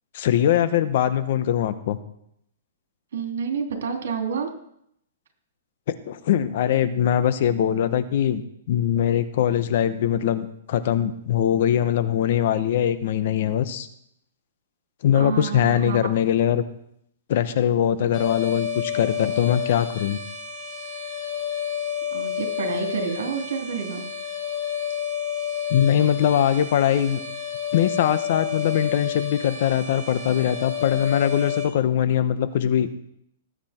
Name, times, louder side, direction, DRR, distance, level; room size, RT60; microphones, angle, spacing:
voice 1, 0.1-2.0 5.9-8.4 8.7-13.9 15.0-16.6 17.3-20.2 25.7-27.2 27.7-33.0, left 10 dB, 55° left, 12 dB, 1.1 m, -22 dB
voice 2, 3.1-4.5 15.1-16.1 22.1-24.1, right 6 dB, 75° right, 3 dB, 3.3 m, -29 dB
sound 1, 18.1-31.7, left 8 dB, 20° left, 5.5 m, -30 dB
19.0 x 8.8 x 4.5 m, 0.74 s
hypercardioid pair, 155°, 0 cm